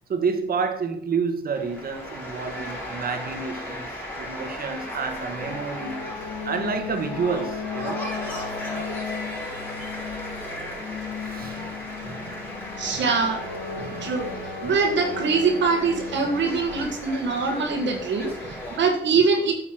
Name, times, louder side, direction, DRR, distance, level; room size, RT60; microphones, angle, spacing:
voice 1, 0.1-6.0 6.4-8.1 11.2-11.7 12.0-12.4 12.9-13.0 13.7-14.1 14.6-14.7 18.4-18.5, right 5 dB, 50° right, 1.6 m, -29 dB
sound 1, 1.5-18.8, left 1 dB, 10° left, 4.2 m, -36 dB
sound 2, 5.4-16.9, left 5 dB, 65° left, 2.1 m, -36 dB
voice 2, 12.8-13.5 14.0-14.3 14.6-19.5, right 4 dB, 65° right, 1.7 m, -23 dB
8.7 x 7.0 x 4.6 m
cardioid pair, 90°, 20 cm